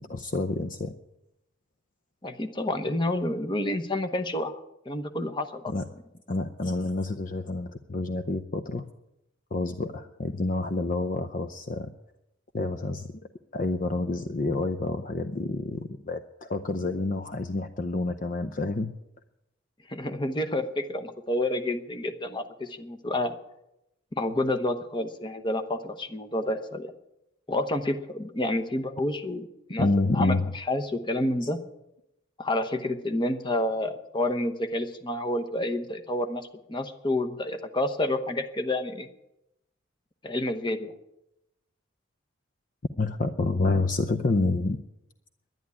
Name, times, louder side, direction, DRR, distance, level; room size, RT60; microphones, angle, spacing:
voice 1, 0.1-0.9 5.7-5.8 6.3-8.9 9.5-11.9 12.5-13.1 13.5-18.9 29.8-30.5 43.0-44.8, left 2 dB, 40° left, 9 dB, 0.6 m, -28 dB
voice 2, 2.2-5.7 19.9-23.3 24.1-26.9 27.5-29.9 30.1-31.6 32.4-39.1 40.2-40.9, left 1 dB, 25° left, 7 dB, 1.0 m, -29 dB
11.0 x 10.5 x 9.7 m, 0.86 s
head